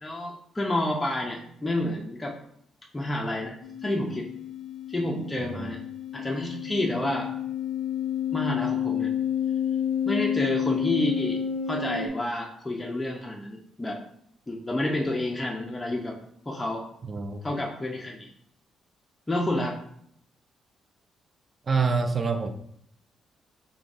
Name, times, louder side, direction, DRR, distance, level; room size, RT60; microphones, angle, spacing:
voice 1, 0.0-2.4 2.9-3.6 3.8-4.3 4.9-5.8 6.1-7.3 8.3-9.1 10.1-11.4 11.7-14.0 14.5-16.2 16.5-16.8 17.4-18.3 19.3-19.8, left 1 dB, 15° left, -2 dB, 0.5 m, -29 dB
sound 1, 3.6-12.1, left 8 dB, 80° left, 0.4 m, -30 dB
voice 2, 5.4-5.7 17.1-17.4 21.7-22.5, right 4 dB, 35° right, 7 dB, 0.4 m, -26 dB
3.8 x 3.4 x 2.5 m, 0.70 s
cardioid pair, 90°, 0 cm